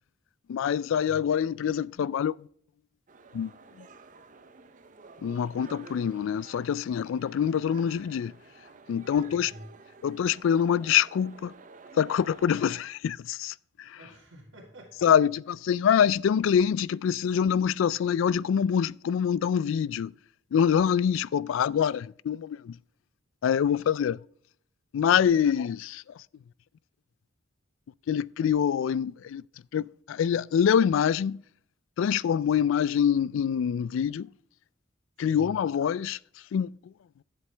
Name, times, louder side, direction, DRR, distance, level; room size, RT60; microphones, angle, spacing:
voice 1, 0.5-2.5 3.3-3.5 3.8-3.9 5.2-8.3 8.9-9.5 10.0-11.5 11.9-14.0 15.0-20.1 20.5-22.8 23.4-24.2 24.9-26.0 28.1-29.4 29.7-31.4 32.0-34.3 35.2-36.2 36.5-36.9, left 8 dB, 75° left, 0.3 m, -25 dB
sound 1, 3.1-12.8, right 4 dB, 40° right, 0.7 m, -51 dB
voice 2, 9.0-9.7 14.0-15.1 23.5-24.0 25.1-25.5 32.5-32.6 35.2-35.6, equal, 70° right, 1.9 m, -49 dB
11.5 x 7.8 x 3.3 m
head